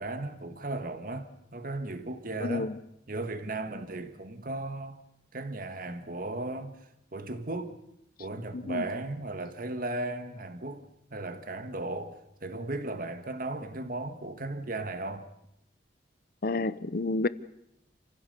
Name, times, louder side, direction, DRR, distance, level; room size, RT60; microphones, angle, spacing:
voice 1, 0.0-2.7 3.1-5.0 5.3-7.8 8.2-15.3, right 2 dB, 50° right, 1.7 m, -36 dB
voice 2, 2.4-2.8 8.5-8.8 16.4-17.3, left 3 dB, 55° left, 0.8 m, -30 dB
28.5 x 16.0 x 6.8 m
head